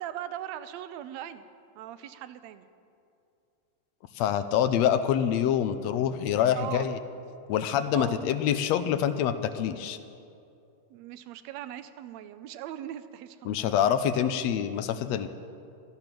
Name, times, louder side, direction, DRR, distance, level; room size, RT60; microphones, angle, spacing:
voice 1, 0.0-1.5 1.8-2.7 6.5-6.9 7.9-8.2 10.9-13.7, right 11 dB, 75° right, 12 dB, 1.8 m, -39 dB
voice 2, 4.2-7.0 7.5-10.0 13.5-15.3, left 9 dB, 80° left, 11 dB, 1.7 m, -26 dB
15.5 x 13.5 x 6.0 m, 2.6 s
omnidirectional pair, 3.3 m